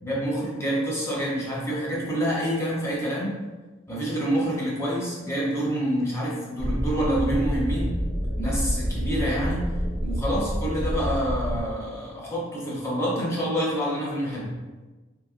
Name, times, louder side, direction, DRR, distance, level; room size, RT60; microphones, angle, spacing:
voice 1, 0.0-3.3 3.9-7.9 8.4-9.6 10.0-14.5, equal, 15° left, -6 dB, 0.8 m, -27 dB
sound 1, 6.6-11.6, equal, 40° left, 1.2 m, -28 dB
3.2 x 3.1 x 2.5 m, 1.2 s
head